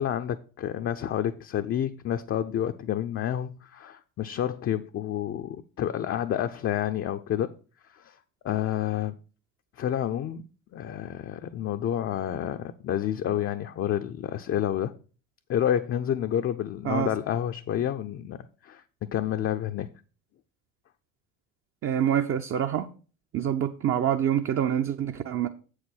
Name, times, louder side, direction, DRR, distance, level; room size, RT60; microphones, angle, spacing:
voice 1, 0.0-7.5 7.9-8.2 8.4-9.1 9.8-10.4 10.7-14.9 15.5-19.9, left 10 dB, 35° left, 0.6 m, -29 dB
voice 2, 21.8-22.9 23.3-25.5, right 10 dB, 35° right, 0.7 m, -26 dB
8.1 x 4.9 x 6.1 m
figure-of-eight pair, 60°, 40 cm